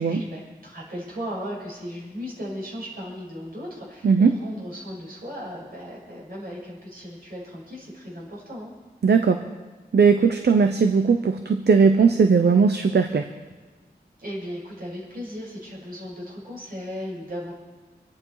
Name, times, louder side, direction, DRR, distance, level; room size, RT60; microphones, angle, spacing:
voice 1, 0.0-4.1 4.4-8.7 14.2-17.5, equal, 60° right, -4 dB, 6.2 m, -36 dB
voice 2, 4.0-4.4 9.0-9.4 9.9-13.3, right 5 dB, 75° right, 7 dB, 0.8 m, -18 dB
25.5 x 10.5 x 4.8 m, 1.3 s
wide cardioid pair, 95°, 17 cm